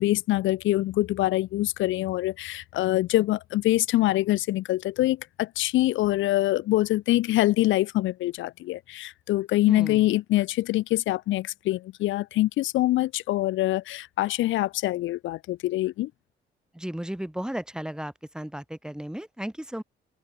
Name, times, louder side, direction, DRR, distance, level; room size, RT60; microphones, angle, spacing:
voice 1, 0.0-16.1, left 16 dB, 75° left, 0.5 m, -24 dB
voice 2, 9.7-10.0 16.7-19.8, equal, 5° right, 4.7 m, -34 dB
cardioid pair, 90°, 20 cm